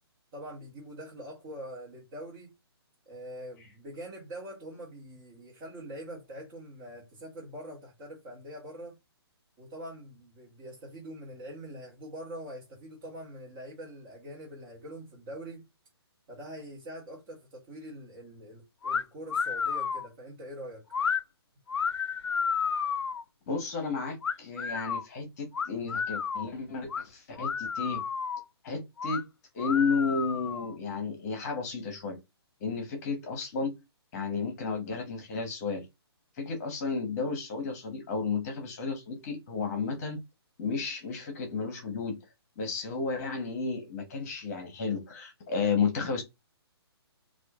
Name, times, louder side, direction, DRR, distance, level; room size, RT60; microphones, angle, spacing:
voice 1, 0.3-2.5 3.1-9.0 9.6-15.6 16.3-20.8, equal, 25° right, 1.2 m, -44 dB
sound 1, 18.8-19.0 19.3-20.1 20.9-21.2 21.7-23.2 24.2-25.0 25.5-26.5 26.9-27.0 27.4-28.4 29.0-29.2 29.6-30.7, left 6 dB, 90° left, 0.5 m, -31 dB
voice 2, 23.5-28.0 28.6-29.2 29.5-32.2 32.6-33.8 34.1-35.8 36.4-40.2 40.6-42.2 42.6-46.2, left 4 dB, 35° left, 1.1 m, -32 dB
4.3 x 2.4 x 2.4 m
hypercardioid pair, 150°, 14 cm